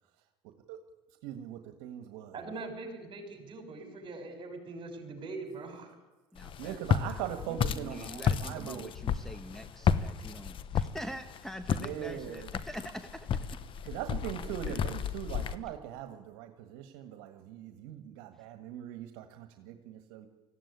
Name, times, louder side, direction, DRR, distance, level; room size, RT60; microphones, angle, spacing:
voice 1, 0.4-0.8 1.2-2.6 6.6-8.9 11.7-12.5 13.8-20.3, right 11 dB, 75° right, 7 dB, 1.7 m, -41 dB
voice 2, 2.3-5.9, right 3 dB, 40° right, 4 dB, 6.1 m, -42 dB
voice 3, 6.3-6.8 7.0-7.2 7.5-13.4 14.7-14.8, equal, 5° left, 8 dB, 1.3 m, -44 dB
Walk footsteps, 6.4-15.5, left 7 dB, 45° left, 1.1 m, -32 dB
18.0 x 15.0 x 9.7 m, 1.2 s
supercardioid pair, 100°, 13 cm